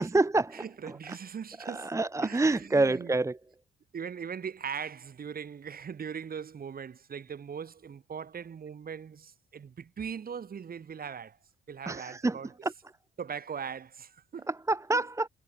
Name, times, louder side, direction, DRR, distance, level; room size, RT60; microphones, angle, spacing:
voice 1, 0.0-1.0 1.6-3.4 11.9-12.7 14.5-15.3, right 2 dB, 15° right, 1.0 m, -28 dB
voice 2, 0.5-1.9 2.2-3.1 3.9-11.4 11.7-12.5 13.2-14.5 14.9-15.0, right 7 dB, 50° right, 5.8 m, -40 dB
cardioid pair, 90°, 20 cm